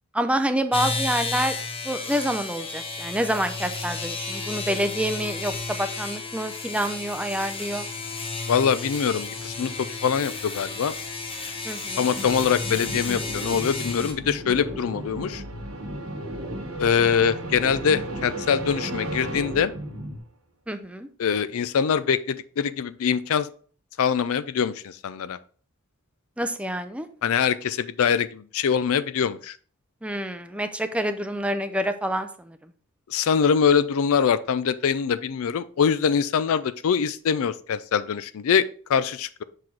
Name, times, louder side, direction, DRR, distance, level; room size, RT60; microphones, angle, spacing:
voice 1, 0.1-1.6 1.8-7.9 11.6-12.1 20.7-21.1 26.4-27.1 30.0-32.7, right 1 dB, 5° right, 9 dB, 0.5 m, -27 dB
sound 1, 0.7-14.1, left 3 dB, 25° left, 1.0 m, -32 dB
sound 2, 7.6-20.2, right 1 dB, 80° right, 1.4 m, -40 dB
voice 2, 8.5-10.9 12.0-15.4 16.8-19.7 21.2-23.5 24.0-25.4 27.2-29.6 33.1-39.4, left 7 dB, 70° left, 15 dB, 0.4 m, -23 dB
sound 3, 12.1-20.2, equal, 25° right, 1.0 m, -37 dB
6.0 x 4.8 x 3.9 m, 0.43 s
head